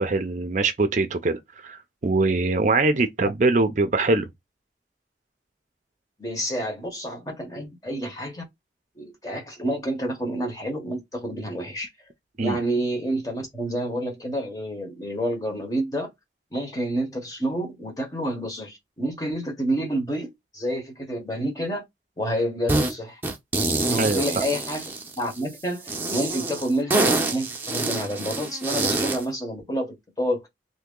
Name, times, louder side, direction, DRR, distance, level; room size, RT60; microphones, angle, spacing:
voice 1, 0.0-4.3 12.4-12.6 24.0-24.4, right 3 dB, 45° right, 0.5 m, -23 dB
voice 2, 6.2-8.4 9.0-11.9 12.4-16.1 16.5-21.8 22.2-23.2 23.8-24.8 25.2-30.4, right 1 dB, 20° left, 0.9 m, -29 dB
sound 1, 22.7-22.9 23.2-25.4 25.9-29.2, right 2 dB, 10° right, 0.7 m, -26 dB
2.8 x 2.6 x 3.7 m
head